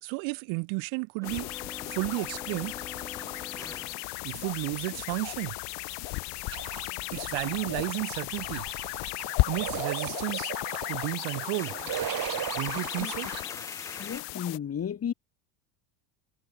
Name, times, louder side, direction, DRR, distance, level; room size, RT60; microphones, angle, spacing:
voice 1, 0.0-1.5 1.9-2.7 4.2-5.6 7.1-8.7 9.5-10.5 10.9-11.8 12.6-13.3, right 34 dB, 70° right, 1.8 m, -32 dB
sound 1, 1.2-14.6, left 26 dB, 55° left, 0.7 m, -35 dB
sound 2, 1.2-14.2, left 2 dB, 5° left, 2.9 m, -47 dB
sound 3, 6.5-13.4, right 13 dB, 45° right, 2.9 m, -37 dB
voice 2, 14.0-15.1, left 8 dB, 30° left, 1.8 m, -33 dB
supercardioid pair, 95°, 48 cm